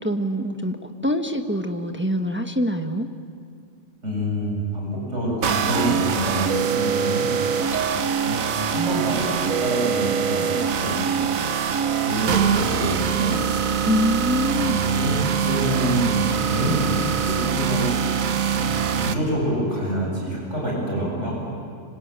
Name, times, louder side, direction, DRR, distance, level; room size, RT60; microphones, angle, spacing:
voice 1, 0.0-3.1 13.9-14.8, equal, 10° right, 5 dB, 1.2 m, -24 dB
voice 2, 4.0-7.3 7.9-11.2 12.0-13.4 14.6-15.2 15.4-18.3 18.6-21.4, right 1 dB, 60° right, -2 dB, 7.9 m, -27 dB
sound 1, 5.4-19.1, right 7 dB, 80° right, 1.4 m, -23 dB
sound 2, 7.7-8.9, right 6 dB, 40° left, 2.6 m, -33 dB
26.5 x 25.0 x 9.0 m, 2.4 s
omnidirectional pair, 1.4 m